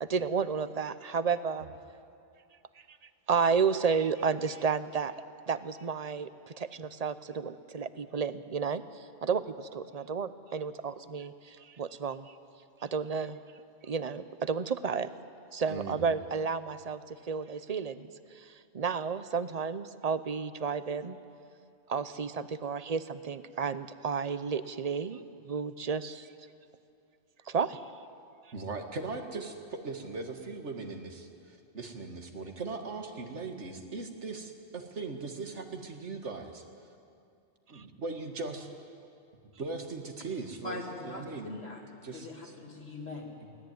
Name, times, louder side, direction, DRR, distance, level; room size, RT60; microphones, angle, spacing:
voice 1, 0.0-1.7 3.3-5.1 5.5-12.3 12.8-13.4 13.8-15.1 15.5-21.2 21.9-26.3 27.5-27.8 37.7-37.8, right 5 dB, 40° right, 13 dB, 0.7 m, -32 dB
voice 2, 15.7-16.0 28.5-36.6 37.7-38.7 39.6-41.5 42.0-42.5, right 3 dB, 90° right, 4 dB, 2.1 m, -39 dB
voice 3, 40.6-41.8 42.1-43.3, left 2 dB, 65° left, -3 dB, 2.4 m, -41 dB
23.5 x 17.0 x 9.4 m, 2.5 s
omnidirectional pair, 1.2 m